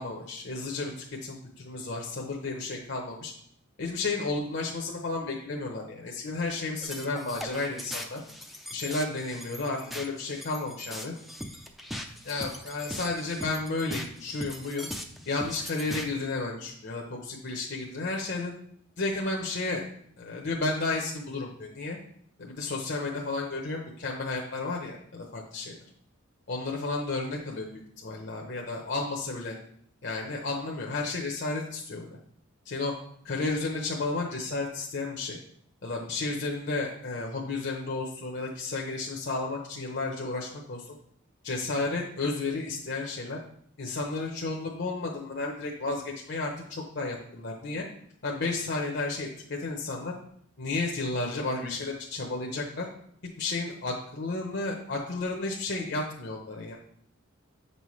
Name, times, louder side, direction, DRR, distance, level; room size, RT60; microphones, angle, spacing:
voice 1, 0.0-3.3 3.8-8.2 8.7-11.1 12.2-14.9 15.3-18.5 19.0-19.8 20.2-22.0 22.4-25.8 26.5-29.6 30.0-32.1 32.6-32.9 33.2-35.4 35.8-40.9 41.4-43.4 43.8-47.9 48.2-50.1 50.6-52.9 53.4-56.8, left 3 dB, 55° left, -1 dB, 0.8 m, -32 dB
sound 1, 6.8-16.1, equal, ahead, 0.5 m, -40 dB
8.0 x 5.5 x 3.1 m, 0.66 s
head